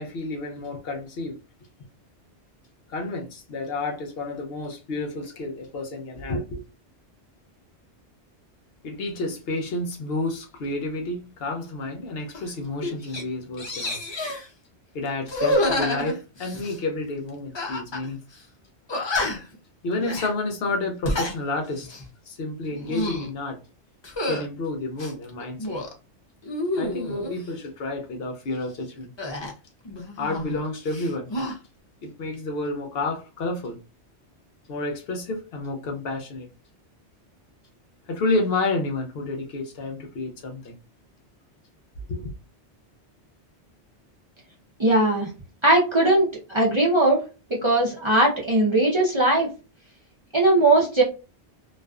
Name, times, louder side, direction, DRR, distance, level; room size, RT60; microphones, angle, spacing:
voice 1, 0.0-1.4 2.9-6.6 8.8-14.0 14.9-18.2 19.8-21.9 22.3-23.6 24.2-25.7 26.8-29.1 30.2-31.3 32.0-33.8 34.7-36.5 38.1-40.7 42.1-42.3, left 2 dB, 65° left, 0.8 m, -30 dB
sound 1, 12.3-12.5 12.8-13.2 13.6-14.5 15.3-16.8 17.5-18.1 18.3-18.4 18.9-19.5 20.0-20.3 20.9-21.4 21.8-22.1 22.7-23.3 24.0-24.4 25.0-25.9 26.4-27.4 29.2-30.6 30.9-31.5, left 1 dB, 40° left, 0.4 m, -28 dB
voice 2, 44.8-45.3 45.6-47.2 47.5-49.5 50.3-51.0, right 2 dB, 35° right, 0.6 m, -19 dB
2.4 x 2.3 x 2.2 m
omnidirectional pair, 1.2 m